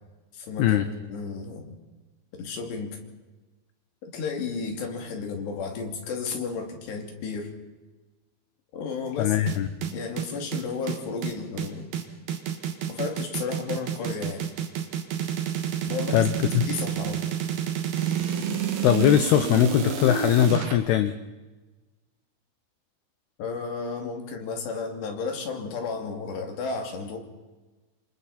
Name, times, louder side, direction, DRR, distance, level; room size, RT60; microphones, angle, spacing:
voice 1, 0.3-1.8 2.3-3.0 4.0-7.5 8.7-9.4 9.9-12.0 12.9-14.5 15.8-16.3 16.7-17.2 23.4-27.2, left 5 dB, 65° left, 3 dB, 4.6 m, -33 dB
voice 2, 9.2-9.7 16.1-16.7 18.8-21.1, left 11 dB, 80° left, 10 dB, 2.4 m, -21 dB
sound 1, 9.5-20.8, right 8 dB, 60° right, 3.4 m, -29 dB
27.5 x 27.0 x 4.3 m, 1.2 s
omnidirectional pair, 5.6 m